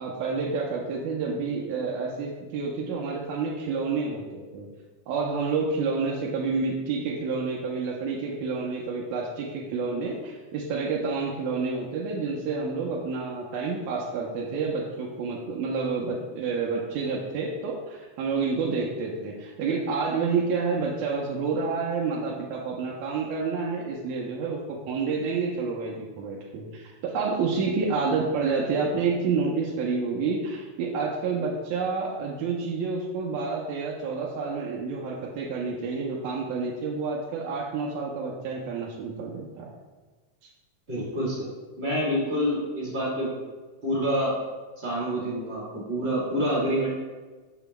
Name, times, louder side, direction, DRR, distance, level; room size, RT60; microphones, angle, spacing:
voice 1, 0.0-4.7 5.1-39.7, right 4 dB, 80° right, -3 dB, 1.9 m, -29 dB
voice 2, 40.9-43.3 43.8-44.3 44.8-46.9, equal, 35° right, -6 dB, 1.1 m, -27 dB
7.0 x 6.7 x 2.2 m, 1.3 s
omnidirectional pair, 3.5 m